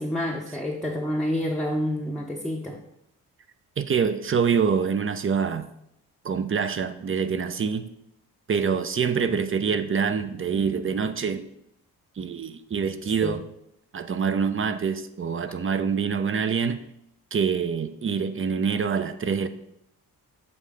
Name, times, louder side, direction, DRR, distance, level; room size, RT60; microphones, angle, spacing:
voice 1, 0.0-2.8 13.2-13.3, left 1 dB, ahead, -1 dB, 0.7 m, -28 dB
voice 2, 3.8-5.7 6.2-7.9 8.5-11.5 12.2-13.4 13.9-16.8 17.3-19.5, right 6 dB, 30° right, 11 dB, 0.5 m, -25 dB
7.1 x 2.8 x 4.9 m, 0.76 s
supercardioid pair, 50°, 42 cm